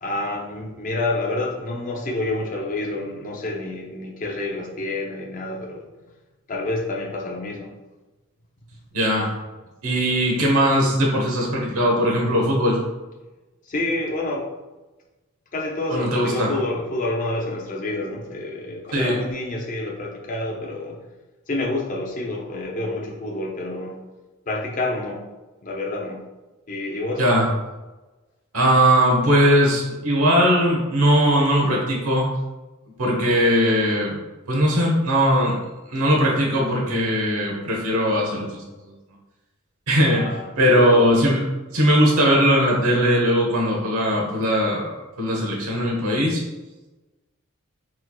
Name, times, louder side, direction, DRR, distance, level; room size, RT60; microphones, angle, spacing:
voice 1, 0.0-5.9 6.5-7.7 13.6-14.5 15.5-21.0 21.5-24.0 24.5-25.2 25.6-26.3 26.7-27.3 40.0-41.1, left 2 dB, 35° left, -1 dB, 0.5 m, -28 dB
voice 2, 8.9-9.3 9.8-12.8 15.9-16.5 18.9-19.2 27.2-27.5 28.5-32.3 33.0-34.2 34.5-35.6 35.9-38.9 39.9-41.4 41.7-44.9 45.2-46.4, equal, 80° right, -1 dB, 1.0 m, -19 dB
4.3 x 4.3 x 2.3 m, 1.1 s
head